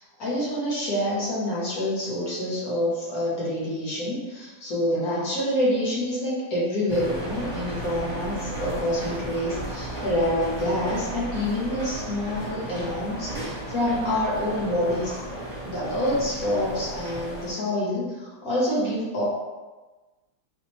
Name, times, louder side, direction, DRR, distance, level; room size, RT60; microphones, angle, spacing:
voice 1, 0.0-15.2 15.6-19.2, left 1 dB, 55° left, -7 dB, 1.4 m, -27 dB
sound 1, 6.9-17.5, right 1 dB, 40° right, 1.5 m, -34 dB
4.4 x 2.5 x 2.9 m, 1.2 s
omnidirectional pair, 2.1 m